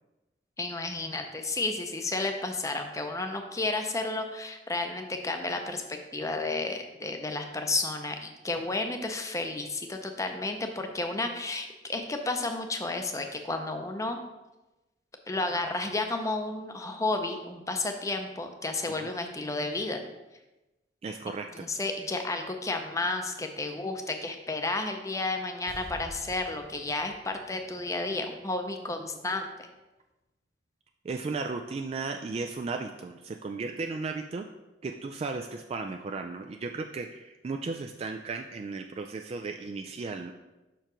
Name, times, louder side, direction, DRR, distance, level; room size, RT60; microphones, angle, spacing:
voice 1, 0.6-14.2 15.3-20.0 21.5-29.7, left 2 dB, 20° left, 5 dB, 0.6 m, -32 dB
voice 2, 21.0-21.7 31.0-34.5 34.8-40.3, right 4 dB, 35° right, 5 dB, 0.3 m, -35 dB
sound 1, 25.7-28.9 29.1-29.2, equal, 55° left, 1.2 m, -49 dB
5.8 x 4.6 x 5.0 m, 1.0 s
head